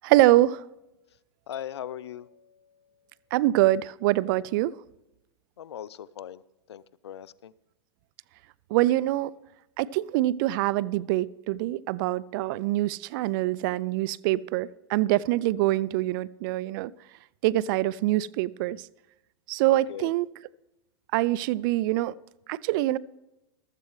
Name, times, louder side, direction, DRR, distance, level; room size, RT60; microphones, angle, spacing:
voice 1, 0.0-0.6 3.3-4.7 8.7-9.3 9.8-16.9 17.4-18.9 19.5-20.3 21.1-22.1 22.5-23.0, right 16 dB, 50° right, 0.4 m, -24 dB
voice 2, 1.5-2.3 5.6-6.4 6.7-7.5 19.9-20.1, left 10 dB, 80° left, 0.5 m, -39 dB
sound 1, 1.5-3.4, left 8 dB, 60° left, 1.3 m, -56 dB
15.0 x 13.0 x 3.2 m
hypercardioid pair, 105°, 14 cm